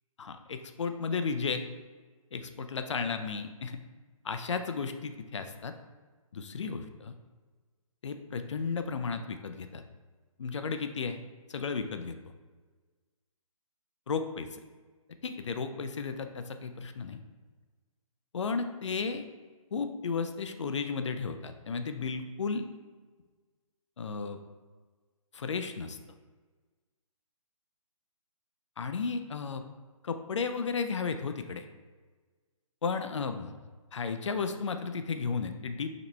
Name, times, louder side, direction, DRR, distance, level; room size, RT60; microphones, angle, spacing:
voice 1, 0.2-1.6 2.3-3.8 4.2-5.7 6.3-7.1 8.0-9.8 10.4-11.2 11.5-12.2 14.1-14.6 15.2-17.2 18.3-19.2 19.7-22.6 24.0-24.4 25.3-26.0 28.8-29.6 30.0-31.7 32.8-33.6 33.9-35.9, left 5 dB, 55° left, 8 dB, 0.4 m, -34 dB
5.0 x 2.9 x 3.3 m, 1.4 s
hypercardioid pair, 170°, 18 cm